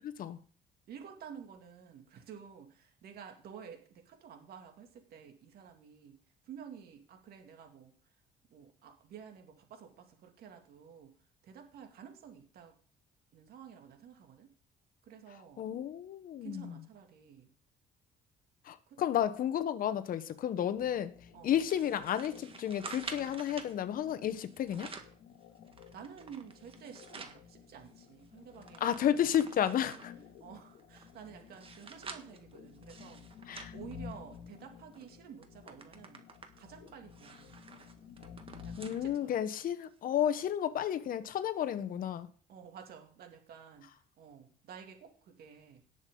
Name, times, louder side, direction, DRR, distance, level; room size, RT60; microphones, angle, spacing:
voice 1, 0.9-6.2 6.4-7.9 8.5-11.1 11.4-12.7 13.3-14.5 15.0-15.6 16.4-17.5 18.9-19.0 21.3-21.6 25.9-30.0 30.4-33.2 33.7-36.2 36.6-37.6 38.6-39.5 42.5-43.9 44.2-45.8, right 7 dB, 65° right, 2.5 m, -51 dB
voice 2, 15.6-16.7 18.6-21.1 21.4-24.9 28.8-30.1 33.5-33.7 38.8-42.3, left 10 dB, 55° left, 1.1 m, -32 dB
sound 1, 20.8-39.2, left 7 dB, 85° left, 2.0 m, -53 dB
sound 2, 21.7-23.7 24.5-25.2 25.7-27.4 27.8-27.9 28.2-30.2 30.8-34.5 34.9-35.1 35.4-39.0 39.4-39.5 40.4-40.5, right 5 dB, 35° right, 1.6 m, -49 dB
18.0 x 6.8 x 3.9 m
cardioid pair, 110°, 17 cm